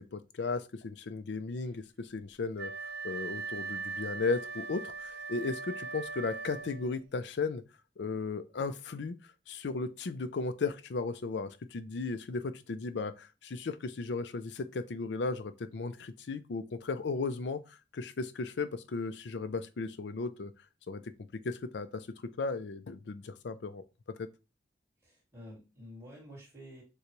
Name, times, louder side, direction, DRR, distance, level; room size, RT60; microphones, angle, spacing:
voice 1, 0.0-2.7 3.0-7.6 8.0-9.2 9.5-20.5 20.9-23.8 24.2-24.3, left 4 dB, 80° left, 0.5 m, -36 dB
Wind instrument woodwind instrument, 2.5-7.0, right 4 dB, 60° right, 0.8 m, -40 dB
voice 2, 25.0-26.8, equal, 15° right, 2.2 m, -50 dB
6.5 x 2.3 x 3.0 m
head